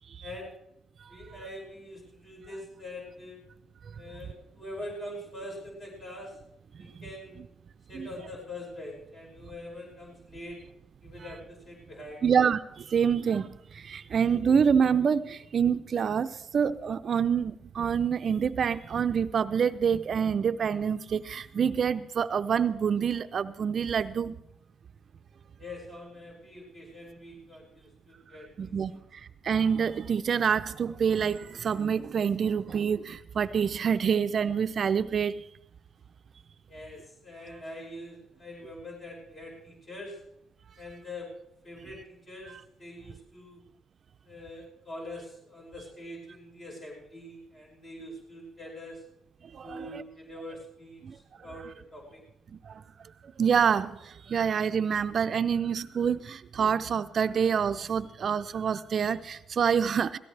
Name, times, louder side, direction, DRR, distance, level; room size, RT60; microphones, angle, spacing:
voice 1, 0.2-0.6 1.1-3.4 4.0-6.4 6.8-7.4 7.9-10.6 11.0-12.2 25.6-29.0 36.7-40.2 40.8-41.3 41.6-43.6 44.3-49.0 49.6-52.2, left 1 dB, 45° left, 5.2 m, -44 dB
voice 2, 12.2-24.4 28.6-35.4 49.5-50.0 51.0-51.2 52.5-52.8 53.4-60.2, right 7 dB, 50° right, 0.5 m, -27 dB
17.5 x 17.0 x 3.3 m
cardioid pair, 90°, 0 cm